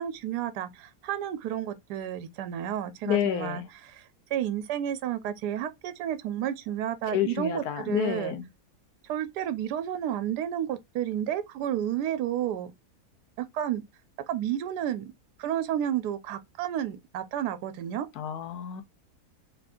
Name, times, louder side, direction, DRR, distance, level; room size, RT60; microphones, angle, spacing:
voice 1, 0.0-3.6 3.9-8.3 9.1-12.7 13.5-13.8 14.3-15.1 15.4-18.1, right 10 dB, 85° right, 1.1 m, -31 dB
voice 2, 3.1-3.7 7.1-8.5 18.2-18.8, left 10 dB, 75° left, 1.2 m, -29 dB
3.4 x 2.5 x 3.5 m
omnidirectional pair, 1.7 m